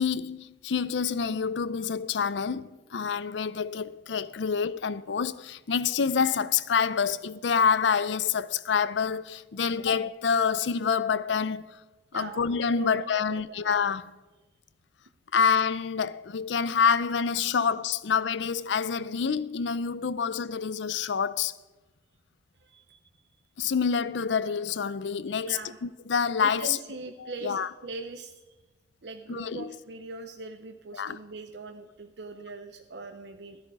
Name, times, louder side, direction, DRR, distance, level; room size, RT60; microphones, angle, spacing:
voice 1, 0.0-11.7 12.1-14.1 15.3-21.5 23.6-26.8 27.2-27.7 29.3-29.7 30.9-31.2, left 6 dB, 75° left, 0.5 m, -27 dB
voice 2, 12.8-13.7 22.6-23.0 25.4-25.8 26.4-28.4 29.0-33.6, right 3 dB, 65° right, 0.7 m, -41 dB
14.5 x 10.5 x 4.8 m
head